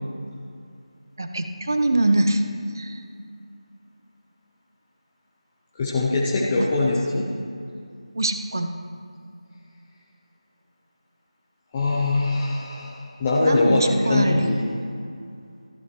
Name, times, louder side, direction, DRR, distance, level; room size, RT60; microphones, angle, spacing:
voice 1, 1.2-2.4 2.8-3.0 8.1-8.8 13.4-14.5, right 2 dB, 35° right, 7 dB, 0.8 m, -23 dB
voice 2, 5.8-7.3 11.7-14.6, left 2 dB, 5° left, -6 dB, 0.4 m, -22 dB
14.0 x 11.0 x 4.6 m, 2.4 s
figure-of-eight pair, 180°, 3 cm